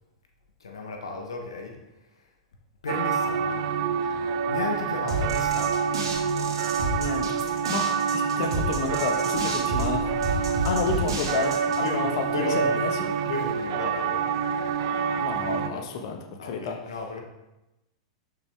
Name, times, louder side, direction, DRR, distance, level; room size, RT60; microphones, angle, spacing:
voice 1, 0.6-1.8 2.8-3.7 4.5-5.9 11.8-12.8 13.2-14.3 15.5-15.8 16.4-17.2, left 4 dB, 75° left, 3 dB, 1.3 m, -34 dB
sound 1, 2.9-15.7, right 7 dB, 55° right, 0.7 m, -27 dB
sound 2, 5.1-11.9, right 2 dB, 70° right, 2.3 m, -31 dB
voice 2, 6.9-13.1 15.2-16.8, left 5 dB, 55° left, 4 dB, 1.3 m, -31 dB
12.0 x 5.8 x 3.5 m, 0.97 s
figure-of-eight pair, 100°, 3 cm